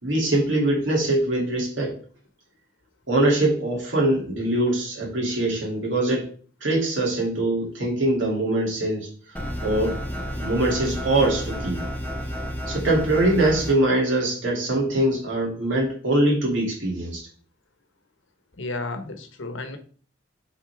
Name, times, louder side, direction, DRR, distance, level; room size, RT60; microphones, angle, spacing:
voice 1, 0.0-1.9 3.1-6.3 6.6-9.1 9.6-10.0 10.4-11.8 12.7-17.2, right 1 dB, 70° right, -2 dB, 2.8 m, -23 dB
sound 1, 9.3-13.7, equal, 10° left, 1.1 m, -31 dB
voice 2, 18.6-19.8, left 2 dB, 75° left, 7 dB, 1.1 m, -32 dB
7.8 x 4.3 x 3.5 m, 0.43 s
head